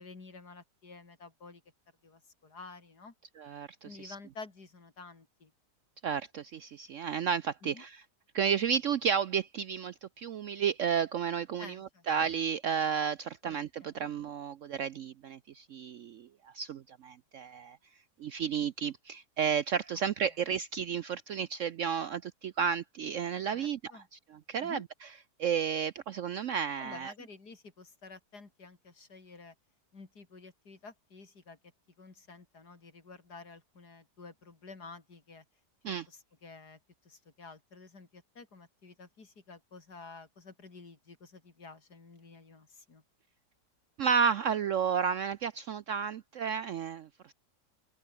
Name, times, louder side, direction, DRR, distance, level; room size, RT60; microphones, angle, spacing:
voice 1, 0.0-1.6 2.0-3.1 3.8-5.5 7.6-7.8 11.6-12.1 13.4-14.1 23.5-24.1 24.6-24.9 26.8-29.5 29.9-31.6 32.0-35.4 36.1-36.8 37.0-43.0, left 4 dB, 65° left, 4.0 m, -51 dB
voice 2, 3.4-4.1 6.0-8.0 8.3-16.3 16.5-17.8 18.2-24.2 24.5-24.8 25.4-27.1 35.8-36.1 44.0-47.3, right 7 dB, 65° right, 0.8 m, -32 dB
open air
omnidirectional pair, 1.8 m